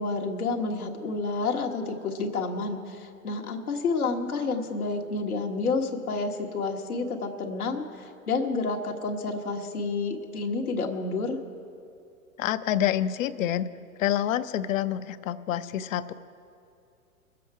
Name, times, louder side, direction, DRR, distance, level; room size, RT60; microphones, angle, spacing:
voice 1, 0.0-11.4, left 3 dB, 90° left, 2 dB, 1.5 m, -29 dB
voice 2, 12.4-13.7 14.0-16.1, left 11 dB, 65° left, 13 dB, 0.7 m, -27 dB
23.0 x 7.6 x 4.8 m, 2.5 s
hypercardioid pair, 110°, 43 cm